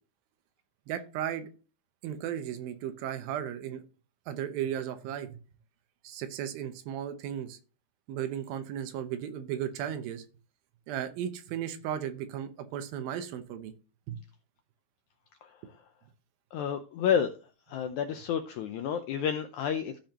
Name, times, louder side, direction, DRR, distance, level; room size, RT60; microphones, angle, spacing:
voice 1, 0.9-1.5 2.0-3.8 4.3-5.4 6.0-7.6 8.1-10.2 10.9-13.7 14.1-14.2, right 10 dB, 80° right, 9 dB, 2.7 m, -35 dB
voice 2, 16.5-17.3 17.7-20.0, left 8 dB, 85° left, 6 dB, 1.7 m, -30 dB
15.0 x 5.1 x 3.0 m, 0.35 s
omnidirectional pair, 4.2 m